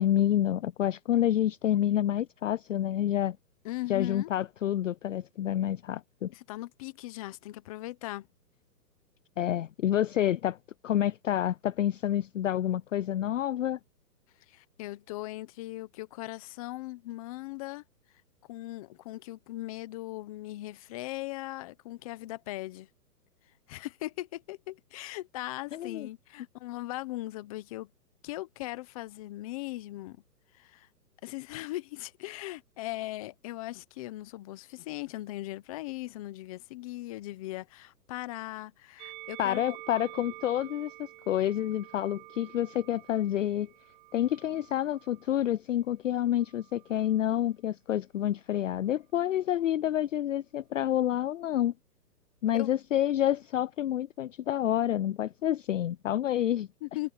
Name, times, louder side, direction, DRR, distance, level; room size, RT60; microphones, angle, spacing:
voice 1, 0.0-3.4 3.9-6.3 9.4-10.6 10.8-13.8 25.7-26.1 39.4-43.7 44.1-51.7 52.4-56.7, left 11 dB, 55° left, 0.5 m, -28 dB
voice 2, 3.6-4.3 6.3-8.3 14.5-17.8 18.5-22.9 23.7-27.9 28.2-30.2 30.5-30.9 31.2-39.8 52.5-52.7 56.8-57.1, left 18 dB, 20° left, 1.1 m, -39 dB
Musical instrument, 39.0-45.4 46.2-47.2, right 22 dB, 30° right, 2.7 m, -49 dB
hypercardioid pair, 160°, 48 cm